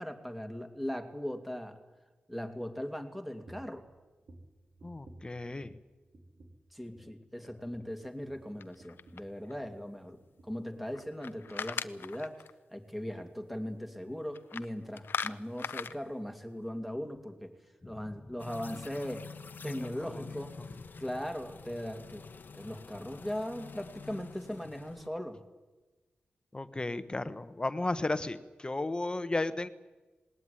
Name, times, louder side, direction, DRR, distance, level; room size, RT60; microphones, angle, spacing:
voice 1, 0.0-1.8 2.3-3.8 6.7-10.2 10.4-12.4 12.7-17.5 17.8-19.2 19.6-20.5 21.0-22.2 22.5-25.4, equal, 5° right, 6 dB, 2.5 m, -39 dB
sound 1, 3.4-3.8 4.2-5.9 6.1-6.7 6.9-7.2 7.5-9.8 10.1-10.6 10.9-11.1 11.5-11.6, right 2 dB, 85° right, 4.3 m, -56 dB
voice 2, 4.8-5.8 19.6-20.2 26.5-29.7, left 2 dB, 25° left, 12 dB, 1.1 m, -34 dB
sound 2, 8.6-9.5 10.9-12.5 14.3-14.7 15.0-16.0, left 6 dB, 80° left, 0.7 m, -38 dB
sound 3, 18.4-25.1, left 5 dB, 65° left, 1.1 m, -48 dB
19.5 x 18.5 x 9.9 m, 1.2 s
wide cardioid pair, 80°, 4 cm